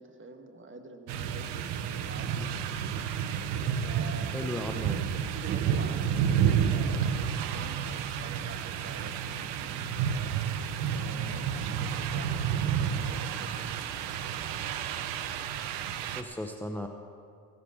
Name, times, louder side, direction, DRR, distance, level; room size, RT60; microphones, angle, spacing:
voice 1, 0.0-2.9 3.8-10.5 10.9-13.9, right 3 dB, 30° right, 4 dB, 1.7 m, -47 dB
sound 1, 1.1-16.2, right 8 dB, 75° right, 0.8 m, -30 dB
voice 2, 4.3-4.9 16.1-16.9, left 1 dB, 5° left, 5 dB, 0.9 m, -35 dB
16.0 x 7.6 x 7.1 m, 2.3 s
hypercardioid pair, 50°, 41 cm